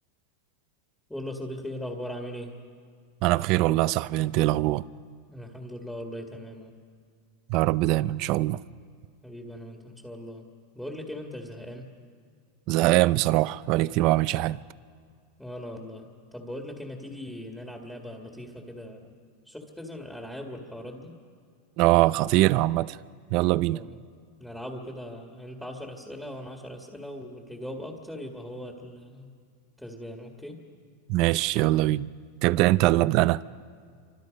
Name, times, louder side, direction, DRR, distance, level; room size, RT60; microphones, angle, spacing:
voice 1, 1.1-2.5 5.3-6.7 9.2-10.4 10.7-11.9 15.4-16.0 16.3-19.1 19.5-21.1 23.7-24.0 24.4-29.3 29.8-30.6, left 1 dB, 5° left, 2.0 m, -39 dB
voice 2, 3.2-4.8 7.5-8.6 12.7-14.6 21.8-23.0 23.3-23.8 31.1-32.1 32.4-33.4, right 17 dB, 45° right, 0.5 m, -22 dB
28.0 x 25.5 x 5.3 m
supercardioid pair, 145°, 0 cm